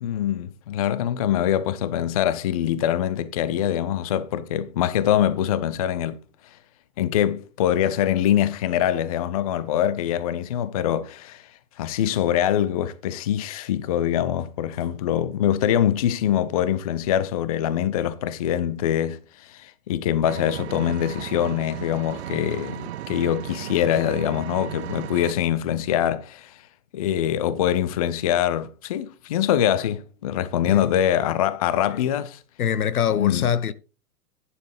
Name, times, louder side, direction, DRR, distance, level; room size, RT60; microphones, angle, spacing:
voice 1, 0.0-6.2 7.0-11.5 11.8-26.6 26.9-32.4 33.2-33.5, left 10 dB, 25° left, 0.4 m, -24 dB
Engine, 20.3-25.3, right 12 dB, 45° right, 0.6 m, -35 dB
voice 2, 32.6-33.7, left 8 dB, 70° left, 0.9 m, -24 dB
11.0 x 9.4 x 3.4 m
figure-of-eight pair, 120°, 46 cm